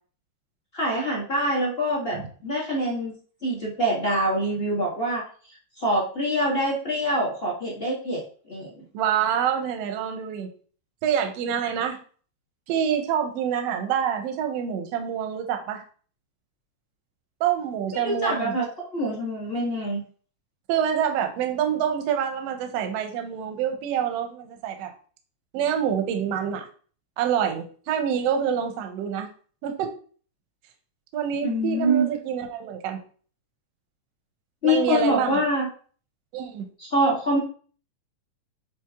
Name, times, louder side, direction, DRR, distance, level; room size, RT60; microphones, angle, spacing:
voice 1, 0.7-2.2 2.4-3.1 3.4-5.2 5.8-8.2 8.5-8.7 17.9-20.0 31.4-32.1 34.6-35.7 36.8-37.4, equal, 30° left, -5 dB, 1.0 m, -25 dB
voice 2, 8.9-10.5 11.0-12.0 12.7-15.8 17.4-18.6 20.7-24.9 25.5-26.7 27.2-29.3 29.6-29.9 31.1-33.0 34.6-35.5 36.3-36.7, right 8 dB, 70° right, 5 dB, 1.6 m, -26 dB
7.7 x 3.5 x 3.6 m, 0.43 s
omnidirectional pair, 3.8 m